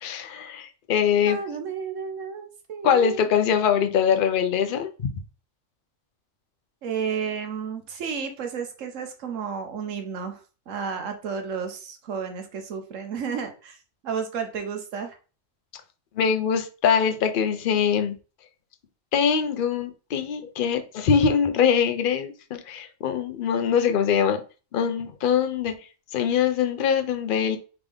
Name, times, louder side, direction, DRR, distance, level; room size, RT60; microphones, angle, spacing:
voice 1, 0.0-1.4 2.8-4.9 16.2-18.1 19.1-24.4 24.7-25.8 26.1-27.6, left 7 dB, 55° left, 7 dB, 0.6 m, -23 dB
voice 2, 1.2-3.2 6.8-10.4 10.7-13.8 14.0-15.2, right 6 dB, 70° right, 5 dB, 1.2 m, -32 dB
3.6 x 3.6 x 3.4 m, 0.35 s
omnidirectional pair, 1.4 m